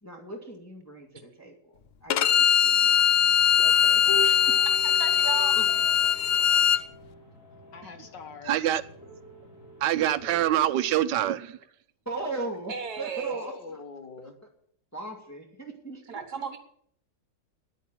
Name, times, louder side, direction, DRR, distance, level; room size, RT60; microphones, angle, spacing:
voice 1, 0.0-3.1 3.6-4.0 4.5-4.6 5.5-5.7 12.1-13.8 14.2-14.3 14.9-16.5, right 2 dB, 10° left, 2.1 m, -39 dB
Bowed string instrument, 2.1-6.8, left 8 dB, 70° left, 0.5 m, -21 dB
sound 1, 3.1-10.6, right 1 dB, 45° left, 4.2 m, -43 dB
voice 2, 4.8-5.5 6.6-6.9 12.7-13.4 16.1-16.6, right 7 dB, 65° right, 1.6 m, -35 dB
voice 3, 7.7-8.7 13.3-14.4, left 4 dB, 90° left, 2.3 m, -43 dB
voice 4, 8.5-8.8 9.8-11.6, right 12 dB, 80° right, 1.3 m, -25 dB
10.5 x 9.1 x 9.0 m
omnidirectional pair, 1.9 m